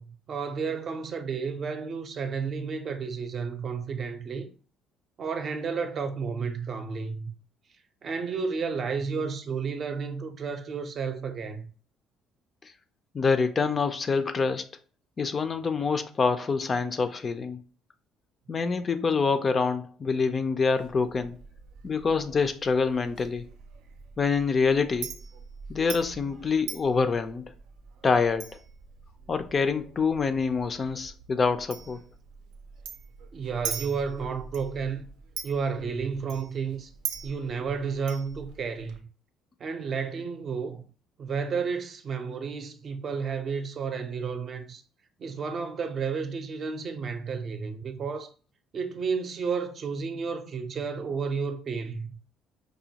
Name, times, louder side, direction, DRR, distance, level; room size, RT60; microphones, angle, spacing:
voice 1, 0.0-4.5 5.2-7.3 8.0-11.7 33.3-35.1 35.4-36.9 37.2-39.1 39.6-40.8 41.2-44.8 45.2-48.3 48.7-52.1, right 5 dB, 45° right, 0.6 m, -32 dB
voice 2, 13.1-14.7 15.2-17.6 18.5-21.4 21.8-23.5 24.2-25.1 25.7-27.4 28.0-28.5 29.3-32.0, left 5 dB, 35° left, 0.4 m, -26 dB
Chink clink, 20.8-39.0, right 7 dB, 90° right, 0.5 m, -43 dB
4.9 x 2.2 x 2.8 m
cardioid pair, 110°, 0 cm